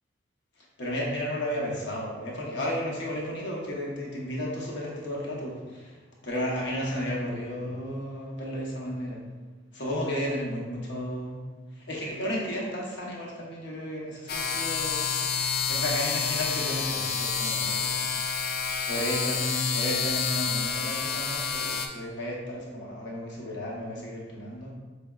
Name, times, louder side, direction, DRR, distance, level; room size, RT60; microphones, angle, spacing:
voice 1, 0.6-9.2 9.7-11.4 11.7-15.1 15.7-18.0 18.9-24.7, equal, 70° left, -3 dB, 1.0 m, -33 dB
sound 1, 14.3-21.9, left 6 dB, 55° left, 0.3 m, -29 dB
4.9 x 3.3 x 2.4 m, 1.3 s
head